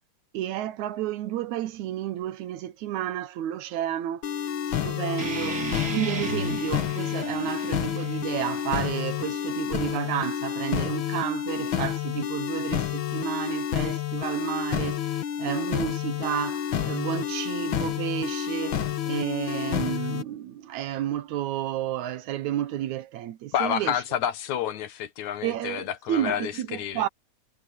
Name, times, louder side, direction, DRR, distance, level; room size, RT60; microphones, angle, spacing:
voice 1, 0.3-4.3 4.7-15.0 15.4-24.0 25.4-27.1, right 12 dB, 80° right, 2.3 m, -31 dB
sound 1, 4.2-20.2, left 10 dB, 55° left, 1.6 m, -29 dB
sound 2, 5.2-10.2, right 4 dB, 35° right, 2.6 m, -36 dB
voice 2, 23.5-27.0, left 10 dB, 75° left, 2.6 m, -29 dB
omnidirectional pair, 3.4 m